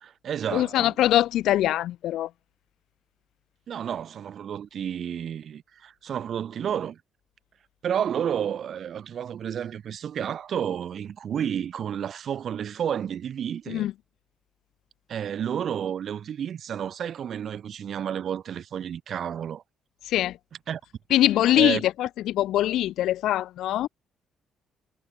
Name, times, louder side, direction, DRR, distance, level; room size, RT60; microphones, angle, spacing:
voice 1, 0.0-0.9 3.7-7.0 7.8-13.9 15.1-19.6 20.7-20.8 21.6-21.8, right 9 dB, 60° right, 2.9 m, -31 dB
voice 2, 0.5-2.3 13.7-13.9 20.0-20.4 21.1-23.9, left 13 dB, 75° left, 0.5 m, -23 dB
supercardioid pair, 60°, 0 cm